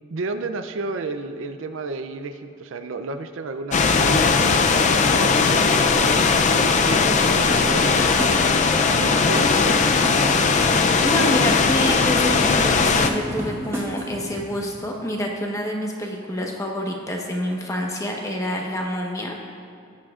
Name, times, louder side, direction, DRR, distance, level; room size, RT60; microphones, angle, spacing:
voice 1, 0.1-8.3 9.0-10.0, right 3 dB, 70° right, 8 dB, 0.5 m, -32 dB
sound 1, 3.7-13.1, left 4 dB, 35° left, 0.4 m, -19 dB
sound 2, 7.0-14.4, equal, 15° right, 1.7 m, -31 dB
voice 2, 11.0-19.3, equal, 15° left, 0 dB, 1.1 m, -27 dB
18.5 x 7.4 x 2.4 m, 2.3 s
head